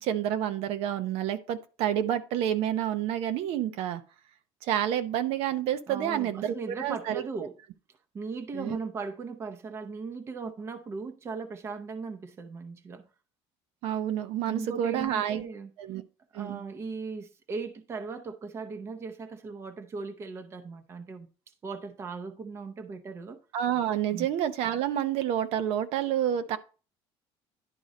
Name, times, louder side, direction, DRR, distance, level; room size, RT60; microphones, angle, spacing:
voice 1, 0.0-4.0 4.6-7.2 8.5-8.8 13.8-15.4 15.8-16.0 16.3-16.6 23.5-26.6, right 10 dB, 70° right, 0.7 m, -29 dB
voice 2, 5.9-7.5 8.1-13.1 14.5-15.7 16.3-21.3 21.6-23.4 24.1-24.3, right 4 dB, 25° right, 0.7 m, -38 dB
11.0 x 3.8 x 4.1 m
cardioid pair, 165°, 10 cm